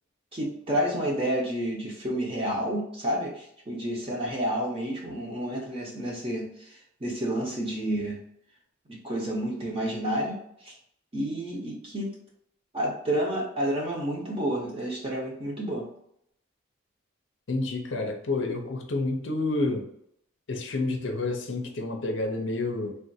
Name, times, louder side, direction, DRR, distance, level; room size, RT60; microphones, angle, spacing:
voice 1, 0.3-8.2 8.9-10.4 10.6-10.7 11.1-12.1 12.7-15.9, right 1 dB, 25° right, -3 dB, 0.8 m, -30 dB
voice 2, 17.5-19.9 20.5-23.0, left 2 dB, 60° left, 3 dB, 0.5 m, -29 dB
3.5 x 2.4 x 2.6 m, 0.72 s
head